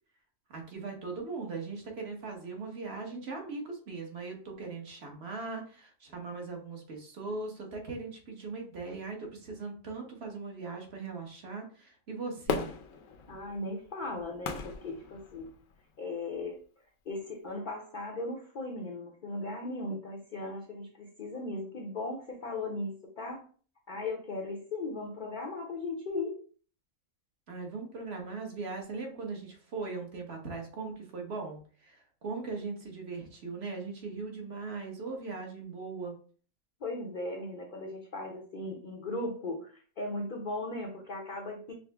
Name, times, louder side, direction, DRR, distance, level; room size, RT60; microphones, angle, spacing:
voice 1, 0.5-12.7 27.5-36.1, right 4 dB, 50° right, 2 dB, 1.2 m, -39 dB
Fireworks, 12.5-15.8 16.4-16.5, left 5 dB, 70° left, 1.0 m, -37 dB
voice 2, 13.3-15.5 16.0-16.6 17.1-23.4 23.9-26.4 36.8-41.7, left 2 dB, 50° left, 1 dB, 0.6 m, -37 dB
5.5 x 2.0 x 3.3 m, 0.43 s
omnidirectional pair, 1.4 m